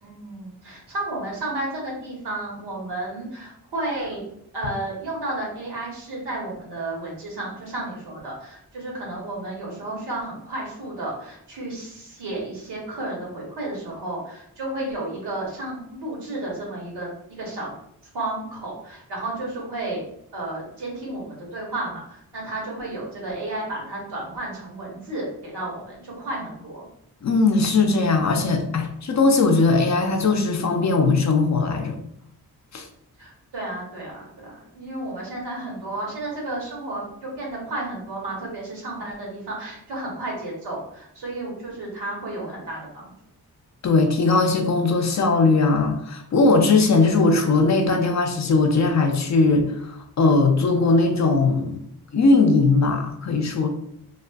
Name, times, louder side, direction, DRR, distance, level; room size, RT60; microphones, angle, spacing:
voice 1, 0.0-4.2 4.5-17.7 18.1-20.0 20.3-26.9 33.2-43.1, right 2 dB, 85° right, -2 dB, 1.0 m, -32 dB
voice 2, 27.2-32.0 32.7-32.9 43.8-51.8 52.1-53.7, left 3 dB, 45° left, 5 dB, 0.5 m, -19 dB
2.4 x 2.3 x 2.3 m, 0.73 s
cardioid pair, 55°, 39 cm